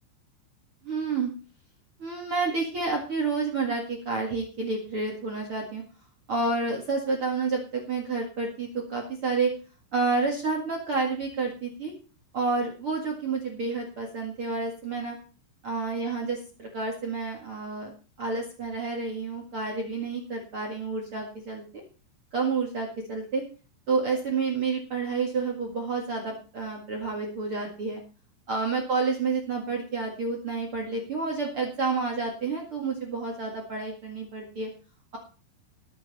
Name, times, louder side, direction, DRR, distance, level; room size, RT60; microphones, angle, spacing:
voice 1, 0.8-1.3 2.0-5.8 6.3-9.5 9.9-11.9 12.3-15.1 15.6-17.9 18.2-21.8 22.3-23.4 23.9-28.0 28.5-34.7, right 4 dB, 55° right, 1 dB, 1.5 m, -29 dB
19.5 x 7.4 x 4.1 m, 0.37 s
omnidirectional pair, 5.6 m